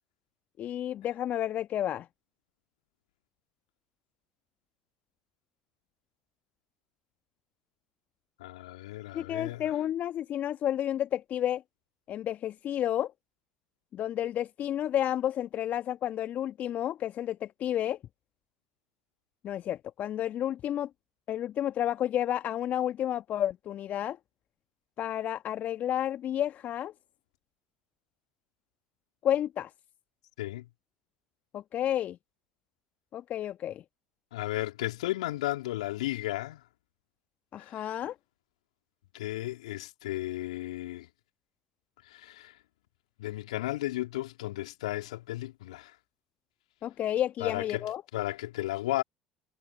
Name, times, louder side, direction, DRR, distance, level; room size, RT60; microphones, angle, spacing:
voice 1, 0.6-2.1 9.1-11.6 12.1-13.1 13.9-18.0 19.4-20.9 21.3-24.2 25.0-26.9 29.2-29.7 31.5-32.2 33.1-33.8 37.5-38.1 46.8-48.0, left 11 dB, 50° left, 1.5 m, -31 dB
voice 2, 8.4-9.6 30.4-30.7 34.3-36.6 37.7-37.8 39.1-41.1 42.1-42.5 43.2-45.9 47.4-47.8 48.1-49.0, left 16 dB, 75° left, 3.6 m, -34 dB
figure-of-eight pair, 65°, 4 cm